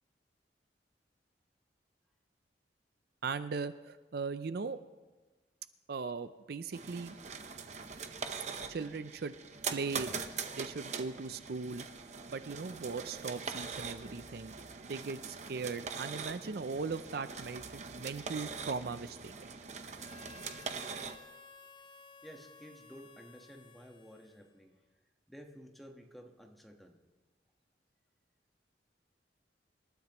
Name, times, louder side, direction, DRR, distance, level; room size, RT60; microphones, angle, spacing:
voice 1, 3.2-4.8 5.9-7.2 8.7-9.3 9.7-10.1 10.5-11.9 12.3-14.5 14.8-19.5, right 4 dB, 60° right, 12 dB, 0.5 m, -39 dB
sound 1, 6.7-21.2, right 5 dB, 40° right, 0.8 m, -42 dB
Harmonica, 19.9-24.8, left 4 dB, 25° left, 0.5 m, -56 dB
voice 2, 22.2-24.8 25.3-26.9, equal, ahead, 2 dB, 1.3 m, -53 dB
27.0 x 13.0 x 3.0 m, 1.3 s
head